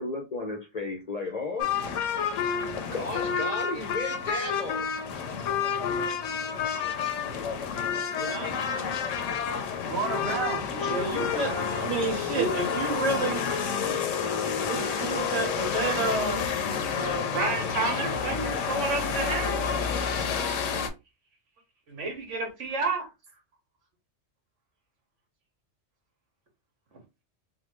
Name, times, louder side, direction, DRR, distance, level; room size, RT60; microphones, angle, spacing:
voice 1, 0.0-1.7 2.8-4.9, left 3 dB, 45° left, 0.5 m, -34 dB
sound 1, 1.6-20.9, left 6 dB, 85° left, 1.0 m, -29 dB
voice 2, 8.1-8.9 10.9-13.4 14.7-16.5 16.9-19.7 21.9-23.1, right 3 dB, 75° right, 1.4 m, -30 dB
voice 3, 9.8-11.7 12.3-12.7, right 4 dB, 60° right, 1.2 m, -33 dB
3.4 x 2.2 x 3.0 m
omnidirectional pair, 1.3 m